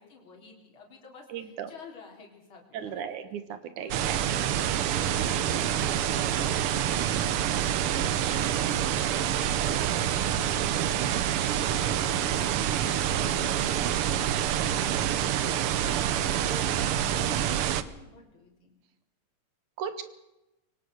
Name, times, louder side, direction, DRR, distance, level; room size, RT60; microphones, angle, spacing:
voice 1, 0.0-3.2 3.8-18.8, left 4 dB, 45° left, 1 dB, 4.3 m, -50 dB
voice 2, 1.3-1.7 2.7-4.2 8.6-8.8 11.4-11.9 13.7-14.0 19.8-20.0, right 8 dB, 90° right, 11 dB, 2.9 m, -37 dB
sound 1, 3.9-17.8, right 10 dB, 65° right, 1.5 m, -27 dB
23.5 x 18.0 x 6.5 m, 0.94 s
omnidirectional pair, 3.4 m